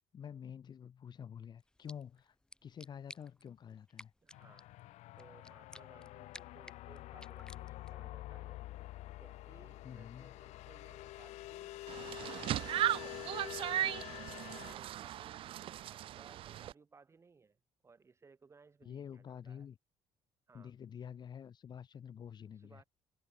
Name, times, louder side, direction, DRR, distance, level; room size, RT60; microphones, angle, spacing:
voice 1, 0.0-2.3 2.6-4.1 9.8-10.4 18.8-19.8 20.5-22.8, left 8 dB, 40° left, 1.3 m, -48 dB
sound 1, 1.6-8.1, left 1 dB, 5° left, 5.5 m, -58 dB
voice 2, 4.2-4.7 5.2-8.6 9.2-11.9 12.2-12.6 13.3-15.6 15.9-19.7 20.5-20.7 22.6-22.8, right 4 dB, 25° right, 5.5 m, -62 dB
sound 2, 4.3-14.7, left 17 dB, 75° left, 0.9 m, -47 dB
sound 3, 11.9-16.7, right 12 dB, 50° right, 0.4 m, -37 dB
cardioid pair, 135°, 12 cm